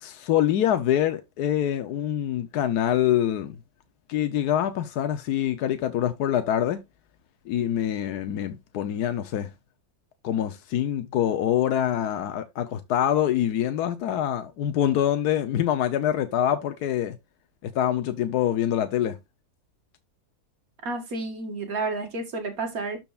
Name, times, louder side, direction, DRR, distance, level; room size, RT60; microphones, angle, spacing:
voice 1, 0.0-3.6 4.1-6.8 7.5-9.5 10.2-17.2 17.6-19.2, left 10 dB, 85° left, 1.3 m, -25 dB
voice 2, 20.8-23.0, right 3 dB, 65° right, 2.0 m, -31 dB
12.5 x 4.5 x 2.4 m
omnidirectional pair, 1.6 m